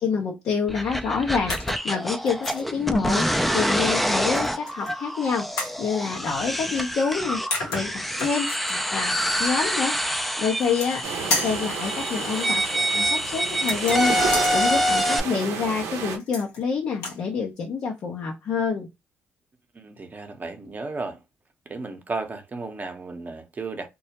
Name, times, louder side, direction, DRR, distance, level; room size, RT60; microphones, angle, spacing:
voice 1, 0.0-5.5 5.8-7.4 7.7-9.9 10.4-11.1 11.4-12.6 12.9-18.9, left 5 dB, 65° left, 0.6 m, -27 dB
sound 1, 0.7-15.2, equal, ahead, 0.4 m, -26 dB
sound 2, 1.5-1.9 2.3-2.6 4.3-4.9 5.6-5.8 7.1-7.2 7.5-8.7 10.5-11.0 11.3-11.7 13.6-14.5 16.1-16.6 16.9-17.2, left 2 dB, 90° left, 0.9 m, -31 dB
sound 3, 11.0-16.2, right 6 dB, 75° right, 0.5 m, -31 dB
voice 2, 19.7-21.2 21.7-23.9, right 3 dB, 35° right, 0.7 m, -34 dB
2.2 x 2.0 x 2.8 m
supercardioid pair, 55°, 5 cm